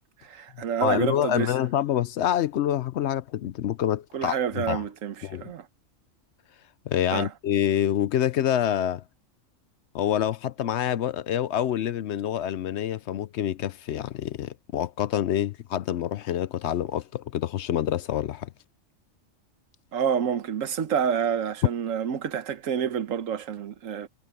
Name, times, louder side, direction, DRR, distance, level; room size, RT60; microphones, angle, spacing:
voice 1, 0.2-1.5 4.1-5.7 7.1-7.3 19.9-24.1, right 8 dB, 85° right, 1.3 m, -28 dB
voice 2, 0.8-4.8 5.2-5.5 6.9-9.0 9.9-18.5, left 10 dB, 65° left, 0.8 m, -27 dB
omnidirectional pair, 1.3 m